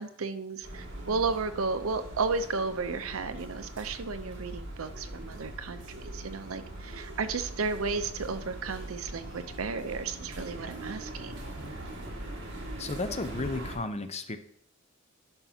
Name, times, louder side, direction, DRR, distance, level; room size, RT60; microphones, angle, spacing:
voice 1, 0.0-11.4, right 4 dB, 80° right, 10 dB, 0.7 m, -33 dB
sound 1, 0.6-13.8, right 1 dB, 60° right, 2.1 m, -41 dB
voice 2, 12.8-14.4, left 3 dB, 30° left, 9 dB, 0.6 m, -33 dB
11.5 x 5.8 x 2.8 m, 0.64 s
head